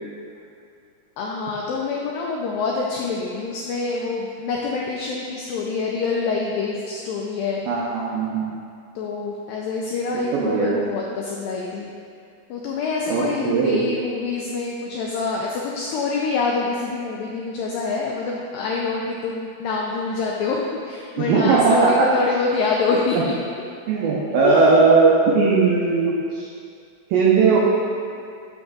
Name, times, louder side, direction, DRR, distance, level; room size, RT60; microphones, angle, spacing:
voice 1, 1.2-7.6 9.0-11.9 12.5-20.6 20.8-23.3 24.4-24.9 27.5-27.6, left 4 dB, 85° left, -2 dB, 2.0 m, -26 dB
voice 2, 7.7-8.5 10.1-10.8 13.1-13.9 21.2-22.1 23.9-26.5 27.1-27.6, right 4 dB, 85° right, -5 dB, 2.1 m, -18 dB
8.3 x 6.3 x 2.4 m, 2.4 s
omnidirectional pair, 4.6 m